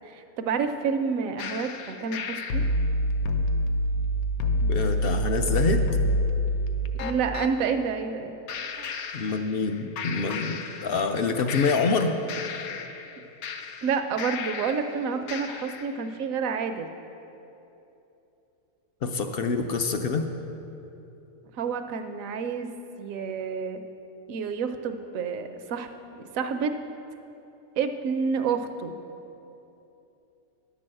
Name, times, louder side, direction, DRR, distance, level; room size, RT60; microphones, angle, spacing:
voice 1, 0.1-2.7 6.9-8.4 8.8-8.9 13.8-16.9 21.5-22.7 23.0-23.8 24.3-25.9 26.2-26.7 27.8-28.9, right 6 dB, 70° right, 8 dB, 1.0 m, -29 dB
sound 1, 1.4-7.5 8.5-9.7 10.0-11.2 11.5-14.9 15.3-15.9, left 1 dB, 80° left, 1.1 m, -28 dB
voice 2, 4.6-5.9 9.1-12.2 19.0-20.3, left 4 dB, 65° left, 6 dB, 0.6 m, -26 dB
10.5 x 6.2 x 7.6 m, 2.9 s
omnidirectional pair, 1.5 m